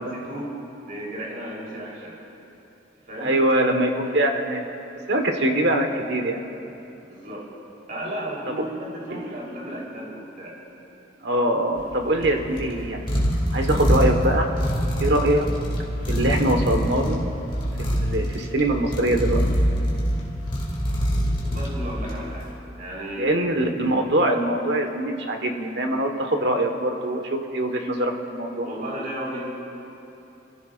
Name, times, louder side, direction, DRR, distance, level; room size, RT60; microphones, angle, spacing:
voice 1, 0.1-0.6 0.8-2.2 3.1-3.4 7.1-7.5 7.9-10.6 21.4-22.5 22.8-23.5 28.6-29.5, equal, 50° right, -5 dB, 3.7 m, -34 dB
voice 2, 3.2-4.6 5.1-6.4 8.5-8.6 9.1-9.3 11.2-13.2 13.5-14.5 15.0-15.5 16.1-17.2 17.8-19.4 23.2-28.7, right 1 dB, 70° right, 4 dB, 1.4 m, -23 dB
sound 1, 11.8-22.4, equal, 30° left, 2.5 m, -25 dB
28.0 x 15.0 x 2.5 m, 2.9 s
head